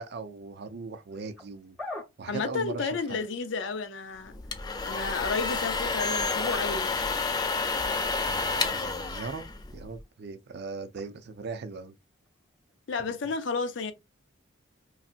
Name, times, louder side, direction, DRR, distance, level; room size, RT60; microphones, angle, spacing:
voice 1, 0.0-1.8 2.2-3.2 8.2-9.4 9.7-11.9, right 4 dB, 55° right, 0.4 m, -39 dB
sound 1, 1.1-1.4 1.8-2.0 5.5-5.8 6.2-7.4 8.0-8.1 9.7-9.8 11.0-11.1 12.3-12.4, left 2 dB, 5° right, 0.9 m, -40 dB
voice 2, 2.3-4.3 4.8-7.1 12.9-13.9, left 4 dB, 65° left, 0.6 m, -32 dB
sound 2, 4.3-10.0, left 4 dB, 20° left, 0.3 m, -30 dB
3.1 x 2.7 x 2.4 m
head